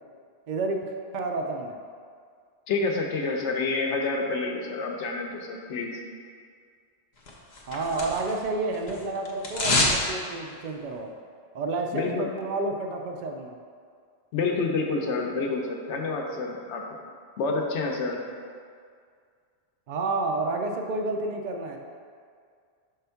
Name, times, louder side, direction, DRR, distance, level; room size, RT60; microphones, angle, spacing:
voice 1, 0.5-0.8 1.1-1.8 7.7-11.1 11.5-13.6 19.9-21.8, right 2 dB, 60° right, 3 dB, 0.5 m, -30 dB
voice 2, 2.7-5.9 11.9-12.3 14.3-17.0 17.4-18.2, left 3 dB, 85° left, 1 dB, 1.0 m, -28 dB
sound 1, 7.3-8.5 8.7-10.0 10.3-10.4, left 2 dB, 40° left, 0.9 m, -26 dB
5.6 x 3.5 x 5.6 m, 2.1 s
omnidirectional pair, 1.2 m